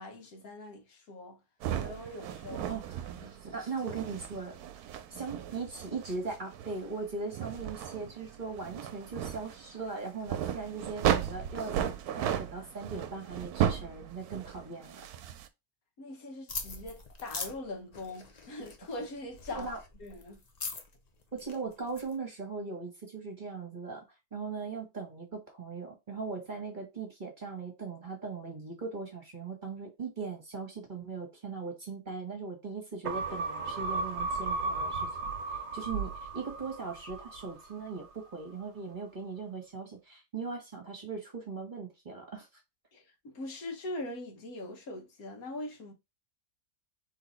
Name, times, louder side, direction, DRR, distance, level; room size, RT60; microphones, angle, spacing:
voice 1, 0.0-1.4 1.8-2.7 3.2-3.4 16.0-19.7 20.0-20.4 42.9-45.9, left 2 dB, 70° left, 1.5 m, -42 dB
sound 1, 1.6-15.5, right 10 dB, 80° right, 1.1 m, -35 dB
voice 2, 2.7-4.6 5.1-15.0 19.5-19.8 21.3-24.0 24.3-35.1 35.5-42.5, right 4 dB, 35° right, 1.3 m, -39 dB
sound 2, 16.5-22.1, left 4 dB, 40° left, 0.6 m, -43 dB
sound 3, 33.0-37.7 38.1-38.2, right 3 dB, 55° right, 1.0 m, -35 dB
3.8 x 3.3 x 4.1 m
omnidirectional pair, 1.6 m